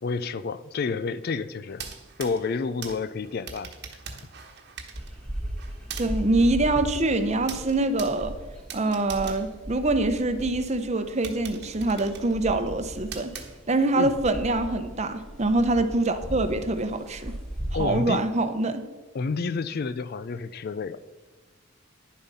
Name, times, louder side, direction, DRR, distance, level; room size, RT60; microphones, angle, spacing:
voice 1, 0.0-1.8 2.2-3.7 14.0-14.1 17.7-18.2 19.1-21.0, left 4 dB, 45° left, 15 dB, 0.4 m, -29 dB
sound 1, 1.7-10.4 10.8-10.9 11.2-14.0, right 6 dB, 50° right, 1.2 m, -43 dB
sound 2, 4.9-17.9, right 1 dB, 5° left, 1.2 m, -37 dB
voice 2, 6.0-8.3 8.7-13.3 13.7-17.4 17.8-18.8, right 2 dB, 30° right, 9 dB, 0.8 m, -25 dB
10.5 x 7.2 x 5.5 m, 1.2 s
head